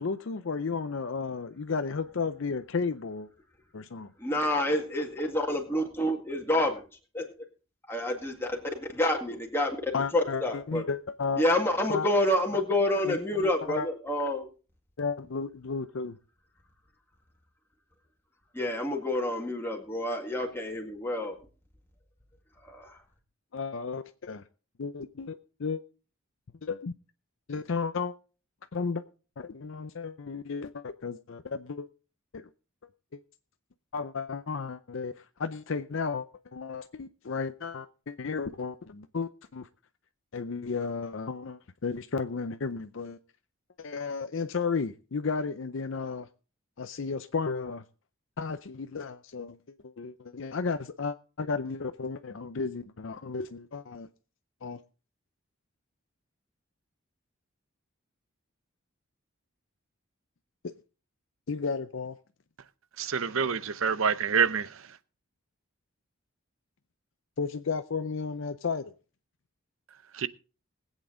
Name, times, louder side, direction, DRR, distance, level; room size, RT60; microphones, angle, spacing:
voice 1, 0.0-3.3 3.7-4.1 9.9-11.4 11.9-12.1 13.1-13.9 15.0-16.2 23.5-24.4 24.8-25.8 26.6-26.9 27.5-28.1 28.7-29.0 29.4-31.9 32.3-32.5 33.1-33.2 33.9-36.3 36.5-39.7 40.3-43.2 43.8-46.3 46.8-47.8 48.4-49.6 49.8-54.1 54.6-54.8 61.5-62.2 67.4-68.9, left 5 dB, 60° left, 0.5 m, -33 dB
voice 2, 4.2-6.8 7.1-7.3 7.9-9.7 10.1-10.8 11.4-14.5 18.5-21.4 22.6-23.0, left 1 dB, 10° left, 1.9 m, -28 dB
voice 3, 63.0-64.7 70.2-70.3, right 6 dB, 75° right, 0.7 m, -26 dB
20.5 x 8.2 x 3.8 m
head